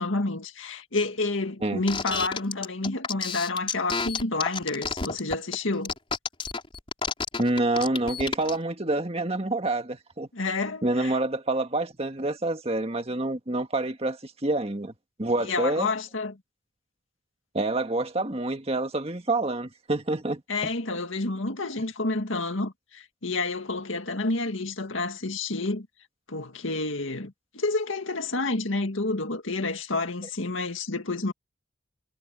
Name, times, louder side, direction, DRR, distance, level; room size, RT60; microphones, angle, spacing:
voice 1, 0.0-5.9 10.3-11.2 15.4-16.4 20.5-25.9 26.3-31.3, left 3 dB, 75° left, 2.0 m, -29 dB
sound 1, 1.9-8.6, left 4 dB, 25° left, 4.4 m, -30 dB
voice 2, 7.4-10.3 10.8-14.9 15.2-15.9 17.5-20.4, right 2 dB, 30° right, 1.8 m, -27 dB
head